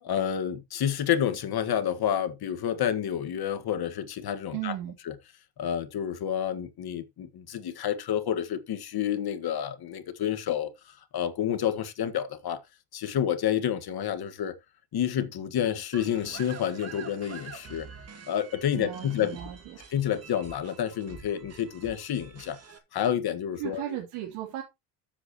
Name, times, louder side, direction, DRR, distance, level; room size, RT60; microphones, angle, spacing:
voice 1, 0.0-4.8 5.1-5.2 5.6-12.6 12.9-14.5 14.9-17.9 18.3-19.4 19.9-22.6 22.9-24.0, left 9 dB, 50° left, 1.7 m, -29 dB
voice 2, 4.5-4.9 18.7-19.8 23.6-24.6, right 13 dB, 85° right, 3.4 m, -35 dB
sound 1, 15.9-22.8, right 6 dB, 30° right, 2.3 m, -46 dB
13.5 x 7.8 x 3.0 m
cardioid pair, 130°, 50 cm